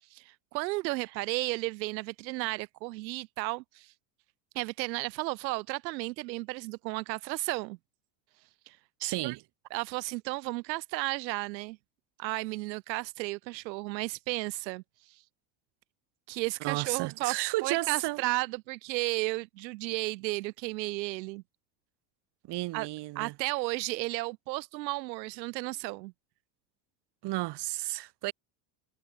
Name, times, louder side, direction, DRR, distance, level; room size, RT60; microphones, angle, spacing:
voice 1, 0.1-3.9 4.5-7.8 8.7-8.8 9.2-9.4 9.7-11.8 12.2-14.8 15.1-15.2 16.3-21.4 22.7-22.9 23.2-26.1, right 21 dB, 85° right, 2.2 m, -33 dB
voice 2, 9.0-9.4 16.6-18.2 22.5-23.3 27.2-28.3, right 19 dB, 55° right, 2.9 m, -32 dB
supercardioid pair, 125°, 50 cm